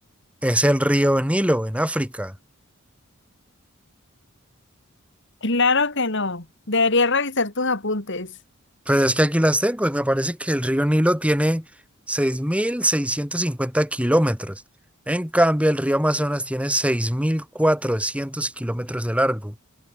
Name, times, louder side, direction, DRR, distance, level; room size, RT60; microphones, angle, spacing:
voice 1, 0.4-2.3 8.9-11.6 12.1-14.6 15.1-19.5, equal, 5° right, 5.0 m, -22 dB
voice 2, 5.4-8.3, left 3 dB, 60° left, 4.4 m, -22 dB
head